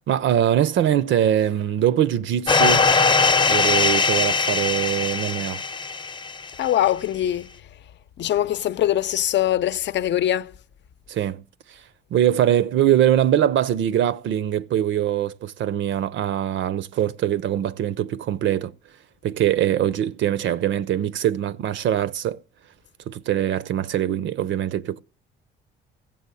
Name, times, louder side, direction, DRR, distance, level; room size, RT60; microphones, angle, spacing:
voice 1, 0.1-2.9 3.5-5.6 11.1-11.4 11.7-11.8 12.1-18.7 19.2-22.4 23.1-25.0, right 11 dB, 70° right, 0.6 m, -22 dB
sound 1, 2.5-6.5, left 4 dB, 25° left, 0.7 m, -20 dB
voice 2, 6.6-7.5 8.2-10.5, left 12 dB, 65° left, 0.7 m, -22 dB
14.5 x 7.5 x 8.3 m
cardioid pair, 90°, 20 cm